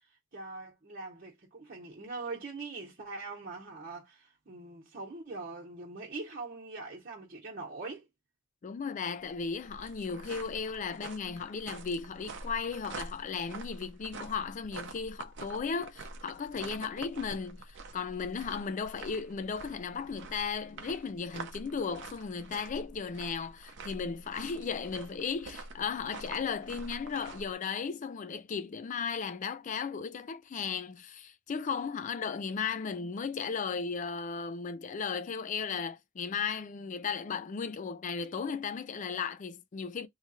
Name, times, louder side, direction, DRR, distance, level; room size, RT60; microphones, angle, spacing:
voice 1, 0.3-8.1, right 3 dB, 50° right, 1.1 m, -42 dB
voice 2, 8.6-40.1, left 5 dB, 40° left, 0.4 m, -36 dB
sound 1, 9.2-27.5, right 3 dB, 65° right, 0.7 m, -46 dB
3.1 x 2.4 x 4.2 m
head